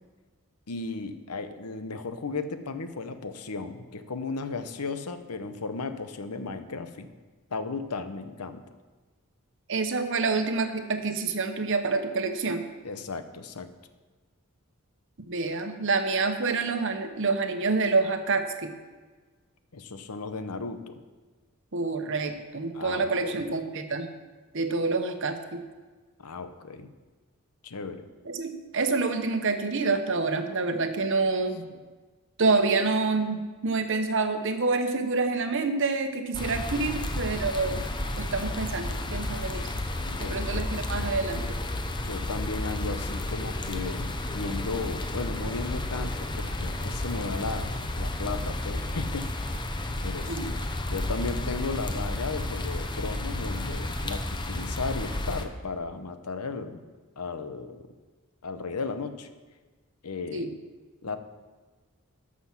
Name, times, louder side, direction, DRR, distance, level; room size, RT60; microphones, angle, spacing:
voice 1, 0.7-7.1 7.5-8.6 12.8-13.7 19.7-21.0 22.7-23.4 26.2-26.9 27.6-28.1 40.0-40.7 42.0-49.3 50.0-50.6 50.9-56.8 57.2-57.9 58.4-59.3 60.0-60.5 61.0-61.2, left 4 dB, 90° left, 10 dB, 0.8 m, -35 dB
voice 2, 9.7-12.7 15.2-18.7 21.7-24.1 24.5-25.6 28.3-31.6 32.4-37.8 38.2-39.7 40.2-41.4 50.3-50.5 60.3-60.5, right 3 dB, 55° right, 7 dB, 1.0 m, -27 dB
sound 1, 36.3-55.4, left 1 dB, 20° left, 0.7 m, -32 dB
13.0 x 6.1 x 6.0 m, 1.4 s
head